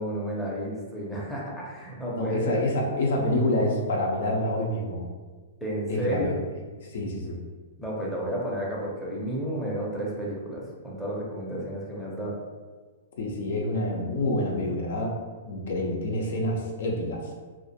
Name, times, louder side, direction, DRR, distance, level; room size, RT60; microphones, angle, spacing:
voice 1, 0.0-2.6 5.6-6.4 7.8-12.3, right 1 dB, 5° left, -6 dB, 0.6 m, -31 dB
voice 2, 2.1-5.1 5.9-6.4 6.8-7.4 13.2-15.1 15.4-17.3, left 1 dB, 70° left, -1 dB, 0.5 m, -27 dB
2.4 x 2.1 x 2.7 m, 1.4 s
hypercardioid pair, 135°, 0 cm